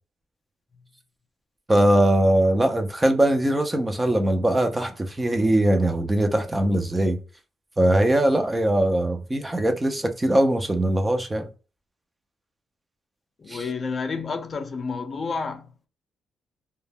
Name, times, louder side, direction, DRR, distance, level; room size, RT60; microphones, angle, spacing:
voice 1, 1.7-7.2 7.8-11.5 13.5-13.6, right 1 dB, 15° right, 0.5 m, -21 dB
voice 2, 13.4-15.9, left 4 dB, 40° left, 0.4 m, -30 dB
2.2 x 2.0 x 3.3 m
cardioid pair, 85°, 0 cm